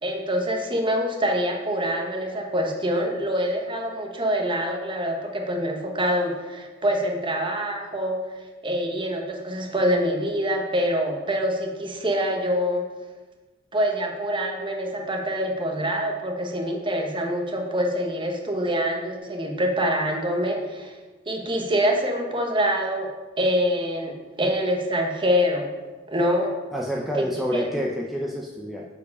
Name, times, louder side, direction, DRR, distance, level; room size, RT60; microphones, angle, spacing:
voice 1, 0.0-8.2 8.6-12.9 13.7-20.9 21.3-23.1 23.4-25.7 26.1-26.5 27.2-27.6, equal, 25° right, 2 dB, 1.1 m, -25 dB
voice 2, 26.7-28.9, equal, ahead, -2 dB, 0.5 m, -28 dB
7.3 x 4.8 x 5.3 m, 1.2 s
head